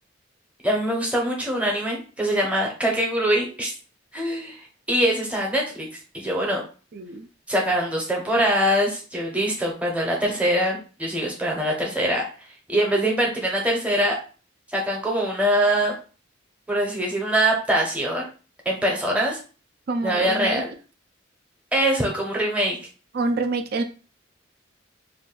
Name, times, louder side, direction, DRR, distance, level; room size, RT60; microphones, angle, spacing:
voice 1, 0.6-3.7 4.1-4.6 4.9-5.9 6.1-6.6 7.5-12.2 12.7-14.1 14.7-16.0 16.7-18.3 18.7-19.4 20.0-20.7 21.7-22.8, right 1 dB, 5° right, -1 dB, 0.8 m, -23 dB
voice 2, 6.9-7.3 19.9-20.6 23.1-23.8, right 3 dB, 50° right, 7 dB, 0.4 m, -26 dB
2.5 x 2.3 x 3.9 m, 0.37 s
head